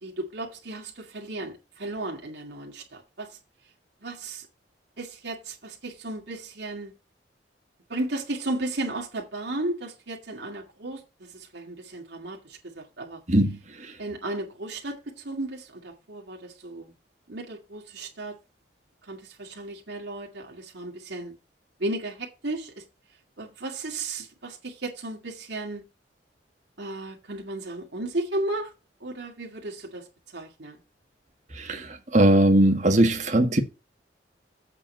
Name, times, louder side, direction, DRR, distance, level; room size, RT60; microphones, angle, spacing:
voice 1, 0.0-3.4 4.0-4.5 5.0-6.9 7.9-13.2 14.0-16.9 17.3-18.4 19.1-21.3 21.8-22.8 23.4-25.8 26.8-28.7 29.0-30.1 30.3-30.8, right 2 dB, 75° right, 2.2 m, -34 dB
voice 2, 31.6-33.6, right 1 dB, 40° right, 1.7 m, -20 dB
8.2 x 5.2 x 7.5 m
head